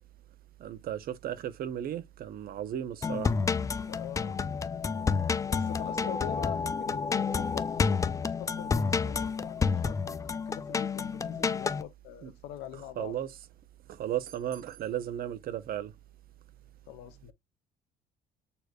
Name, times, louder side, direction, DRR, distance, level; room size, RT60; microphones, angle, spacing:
voice 1, 0.6-3.4 12.2-12.3 13.0-13.3 13.9-15.9, right 11 dB, 60° right, 0.8 m, -35 dB
sound 1, 3.0-11.8, left 5 dB, 20° left, 0.3 m, -30 dB
voice 2, 3.9-4.4 5.5-13.2 16.9-17.3, left 12 dB, 90° left, 0.8 m, -43 dB
6.8 x 3.1 x 2.4 m
cardioid pair, 110°, 17 cm